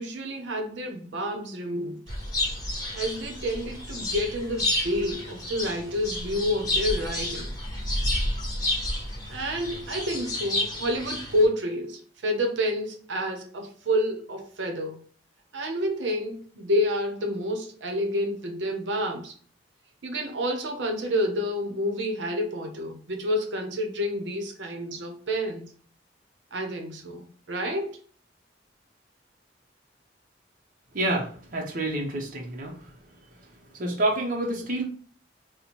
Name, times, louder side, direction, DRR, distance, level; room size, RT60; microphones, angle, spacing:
voice 1, 0.0-2.0 2.9-7.5 9.3-15.1 15.5-19.3 20.0-25.7 26.5-28.0, equal, 85° right, 0.7 m, -29 dB
sound 1, 2.1-11.4, left 1 dB, 20° left, 1.1 m, -30 dB
voice 2, 30.9-32.9 33.7-34.9, right 1 dB, 50° right, 0.7 m, -28 dB
4.2 x 2.1 x 2.9 m
head